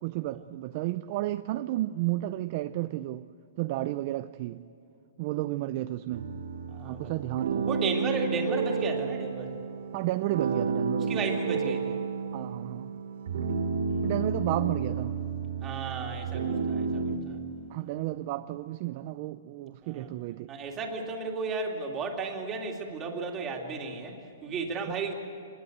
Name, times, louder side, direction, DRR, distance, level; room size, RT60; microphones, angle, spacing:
voice 1, 0.0-3.3 3.6-4.6 5.2-6.3 6.8-7.8 9.9-11.3 12.3-12.9 14.0-15.2 17.7-20.5 24.9-25.0, right 16 dB, 35° right, 12 dB, 0.5 m, -32 dB
sound 1, 6.1-17.2, right 5 dB, 70° right, 3.9 m, -31 dB
voice 2, 6.7-7.1 7.6-9.5 11.0-12.0 13.9-14.1 15.6-17.4 19.8-20.1 20.5-25.1, right 3 dB, 15° right, 1 dB, 2.7 m, -34 dB
25.5 x 21.0 x 8.0 m, 2.6 s
hypercardioid pair, 165°, 0 cm